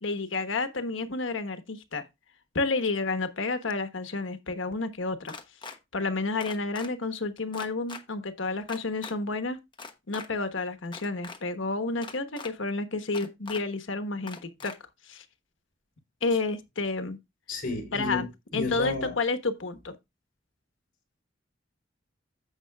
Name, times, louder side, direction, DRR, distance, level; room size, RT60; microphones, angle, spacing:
voice 1, 0.0-2.0 2.5-5.3 5.9-9.6 10.1-14.7 15.1-15.2 16.2-17.2 17.9-18.3 18.5-19.9, left 3 dB, 90° left, 1.2 m, -30 dB
sound 1, 5.3-5.8 6.4-6.9 7.5-8.0 8.7-9.1 9.7-10.3 10.9-11.4 12.0-12.5 13.1-13.6 14.3-14.8, left 4 dB, 25° left, 1.1 m, -41 dB
voice 2, 17.5-18.3 18.5-19.2, left 2 dB, 50° left, 4.0 m, -32 dB
15.0 x 5.6 x 2.3 m
head